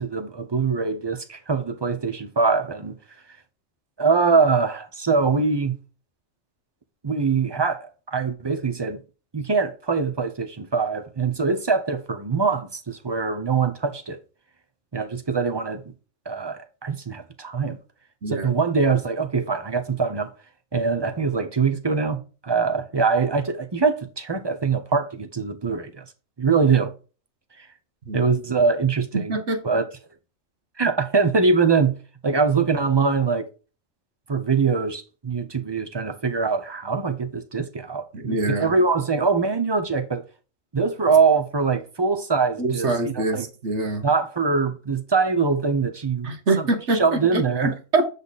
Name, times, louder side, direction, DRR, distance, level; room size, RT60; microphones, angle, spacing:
voice 1, 0.0-2.9 4.0-5.7 7.0-9.0 9.3-14.2 14.9-15.8 16.3-17.8 18.3-20.3 20.7-26.0 26.4-26.9 28.1-29.4 29.6-29.8 30.8-31.9 32.2-33.5 34.3-40.2 40.7-43.5 44.0-46.3 46.6-47.8, right 5 dB, 30° right, 0.6 m, -23 dB
voice 2, 29.1-29.6 38.1-38.7 42.6-44.0 46.2-48.1, right 2 dB, 60° right, 1.5 m, -25 dB
8.1 x 3.5 x 4.0 m
omnidirectional pair, 1.3 m